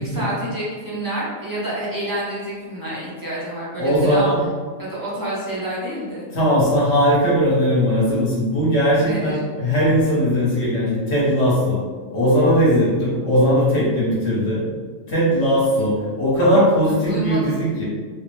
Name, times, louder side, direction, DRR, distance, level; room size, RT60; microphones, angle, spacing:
voice 1, 0.0-4.3 4.8-6.3 9.0-9.4 17.0-17.6, right 1 dB, 25° right, -8 dB, 0.5 m, -28 dB
voice 2, 3.8-4.4 6.3-11.8 12.1-14.6 15.1-17.8, equal, 55° left, -7 dB, 1.0 m, -19 dB
3.6 x 2.0 x 3.0 m, 1.6 s
omnidirectional pair, 1.6 m